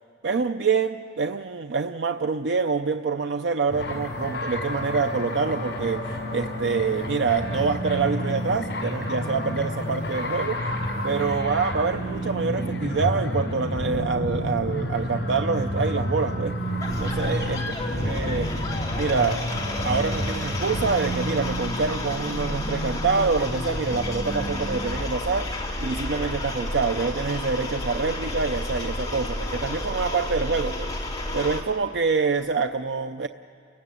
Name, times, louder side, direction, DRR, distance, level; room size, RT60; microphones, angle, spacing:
voice 1, 0.2-10.7 11.0-16.6 16.9-17.6 18.0-18.7 19.0-19.4 19.8-33.3, right 4 dB, 75° right, 8 dB, 0.5 m, -26 dB
sound 1, 3.7-21.3, left 1 dB, 70° left, 5.4 m, -31 dB
sound 2, 7.4-25.0, right 1 dB, 35° left, 2.3 m, -34 dB
sound 3, 16.8-31.6, left 1 dB, 20° left, 2.8 m, -31 dB
30.0 x 16.0 x 9.9 m, 2.3 s
head